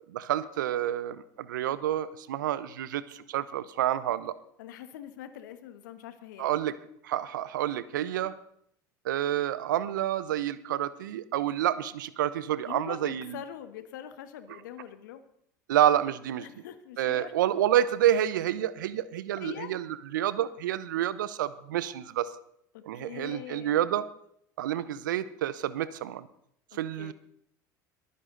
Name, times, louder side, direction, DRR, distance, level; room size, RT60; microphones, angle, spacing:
voice 1, 0.1-4.3 6.4-6.7 7.0-8.3 9.0-13.4 15.7-16.4 17.0-19.8 20.1-22.3 22.8-24.0 24.6-26.3 26.7-27.1, right 11 dB, 80° right, 16 dB, 0.8 m, -28 dB
voice 2, 4.6-6.6 12.6-15.2 16.4-17.3 19.4-19.8 22.7-23.8 27.0-27.1, left 10 dB, 75° left, 10 dB, 1.5 m, -43 dB
22.0 x 9.8 x 4.0 m, 0.69 s
hypercardioid pair, 75°, 10 cm